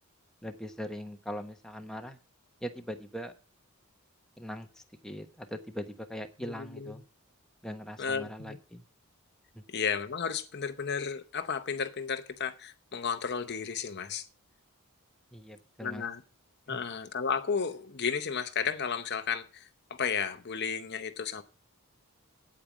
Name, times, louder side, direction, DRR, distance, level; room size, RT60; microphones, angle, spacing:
voice 1, 0.4-2.2 2.6-3.3 4.4-7.0 7.6-8.8 9.5-9.6 15.3-16.1 16.7-16.8, equal, 5° left, 1.1 m, -41 dB
voice 2, 6.4-6.9 8.0-8.6 9.7-14.3 15.8-16.2 16.7-21.4, left 6 dB, 50° left, 0.8 m, -33 dB
8.7 x 8.7 x 6.1 m
head